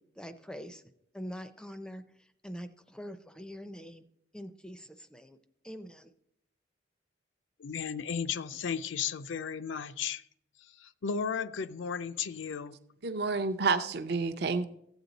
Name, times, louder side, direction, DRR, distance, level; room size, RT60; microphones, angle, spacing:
voice 1, 0.2-0.8 1.1-2.0 2.4-4.0 4.3-5.4 5.6-6.1, equal, 5° left, 0.4 m, -44 dB
voice 2, 7.6-10.2 10.6-12.8, left 6 dB, 80° left, 0.5 m, -35 dB
voice 3, 13.0-14.7, right 4 dB, 55° right, 0.5 m, -29 dB
14.5 x 8.0 x 4.0 m
head